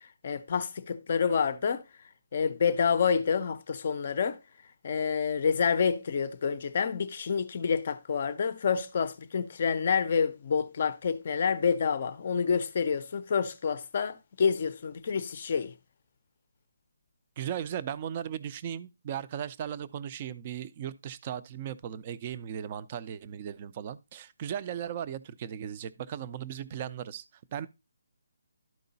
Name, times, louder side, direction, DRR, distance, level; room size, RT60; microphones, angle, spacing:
voice 1, 0.2-1.8 2.3-4.4 4.8-15.7, left 6 dB, 30° left, 0.5 m, -28 dB
voice 2, 17.4-27.2 27.5-27.7, right 9 dB, 20° right, 0.4 m, -37 dB
12.0 x 4.7 x 4.0 m
hypercardioid pair, 180°, 0 cm